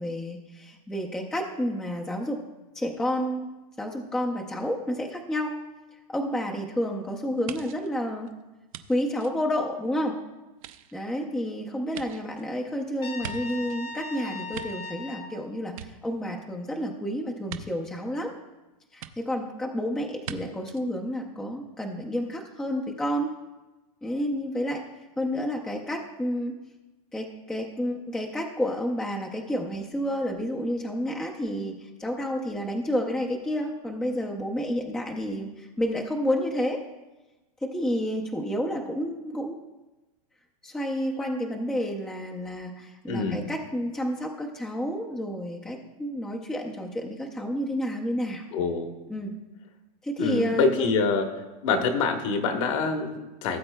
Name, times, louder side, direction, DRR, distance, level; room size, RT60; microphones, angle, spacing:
voice 1, 0.0-2.4 2.7-3.5 3.8-5.6 6.1-8.3 8.9-10.2 10.9-18.3 18.9-23.3 24.0-24.8 25.2-26.5 27.1-36.8 37.6-39.6 40.6-48.4 49.1-49.4 50.0-50.9, equal, 5° left, 1 dB, 0.5 m, -30 dB
sound 1, 7.5-10.1 10.5-13.9 14.3-15.3 15.6-16.6 17.5-17.6 19.0-19.1 20.2-20.4 20.7-20.8, right 10 dB, 60° right, 0.6 m, -42 dB
Trumpet, 13.0-15.3, left 3 dB, 30° left, 0.8 m, -38 dB
voice 2, 43.1-43.4 48.5-48.9 50.2-51.3 51.6-53.6, left 4 dB, 55° left, 5 dB, 1.2 m, -25 dB
17.0 x 7.7 x 2.2 m, 1.1 s
supercardioid pair, 155°, 20 cm